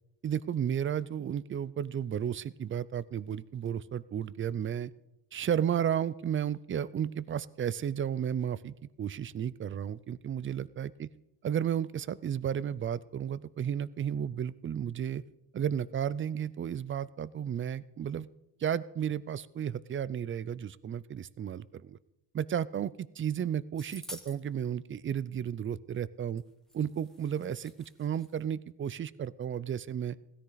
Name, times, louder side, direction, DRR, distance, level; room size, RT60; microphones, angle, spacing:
voice 1, 0.2-4.9 5.3-11.1 11.4-15.2 15.5-18.3 18.6-22.0 22.3-26.4 26.7-27.7 28.0-30.2, right 9 dB, 30° right, 19 dB, 0.4 m, -33 dB
sound 1, 23.8-24.4 26.4-26.5 26.7-28.4, equal, ahead, 1.5 m, -49 dB
16.0 x 13.5 x 3.9 m, 0.88 s
cardioid pair, 110°, 46 cm